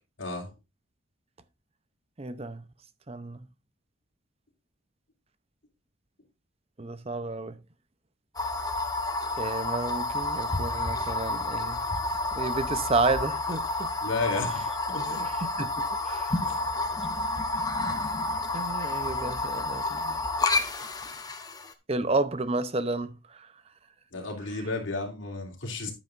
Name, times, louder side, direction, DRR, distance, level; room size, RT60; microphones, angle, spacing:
voice 1, 0.2-0.5 14.0-15.3 16.4-16.6 24.1-25.9, left 3 dB, 65° left, 3.1 m, -33 dB
voice 2, 2.2-2.6 3.1-3.5 6.8-7.6 9.4-11.8 12.3-13.9 15.1-16.3 18.5-20.2 21.9-23.5, right 3 dB, 30° right, 0.7 m, -31 dB
sound 1, 8.4-21.7, left 2 dB, 20° left, 1.0 m, -30 dB
10.5 x 9.1 x 2.6 m
head